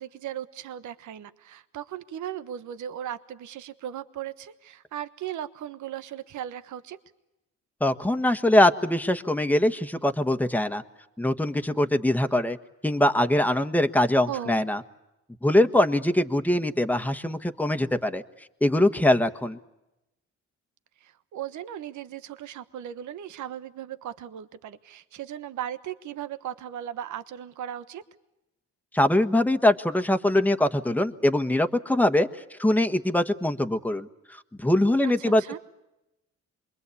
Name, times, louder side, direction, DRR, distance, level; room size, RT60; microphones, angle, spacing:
voice 1, 0.0-7.0 14.3-14.6 21.0-28.0 35.0-35.6, right 10 dB, 75° right, 12 dB, 1.3 m, -37 dB
voice 2, 7.8-10.8 11.2-12.6 12.8-14.8 15.4-18.2 18.6-19.6 28.9-32.3 32.6-34.1 34.6-35.6, left 1 dB, 5° left, 8 dB, 1.4 m, -22 dB
27.5 x 22.0 x 8.5 m, 0.93 s
cardioid pair, 90°, 30 cm